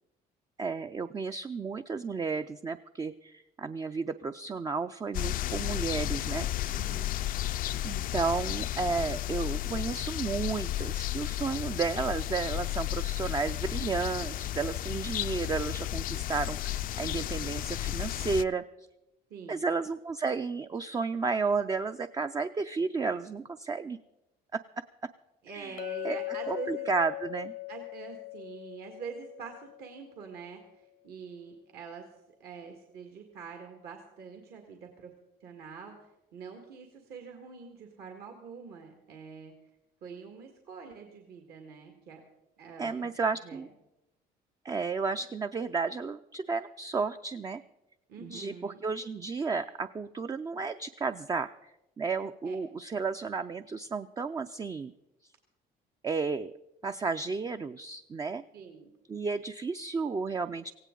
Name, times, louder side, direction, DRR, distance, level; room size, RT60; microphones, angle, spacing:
voice 1, 0.6-6.8 7.8-18.6 19.5-24.0 24.5-24.6 25.5-25.8 26.0-26.2 26.5-27.5 42.8-43.7 44.6-47.6 48.2-51.7 52.0-54.9 56.0-56.5 56.8-58.4 59.1-60.7, right 4 dB, 20° right, 9 dB, 0.4 m, -32 dB
sound 1, 5.1-18.4, left 14 dB, 55° left, 0.4 m, -33 dB
voice 2, 6.7-7.1 19.3-19.6 25.4-26.9 27.7-32.1 32.4-35.1 35.4-36.0 36.3-39.5 40.0-42.2 42.6-43.1 43.4-43.6 48.1-48.8 52.4-52.6 58.5-58.9, right 6 dB, 65° right, 3 dB, 1.9 m, -45 dB
Chink clink, 25.8-30.2, left 21 dB, 90° left, 0.9 m, -39 dB
17.5 x 16.5 x 3.8 m, 0.94 s
cardioid pair, 110°, 17 cm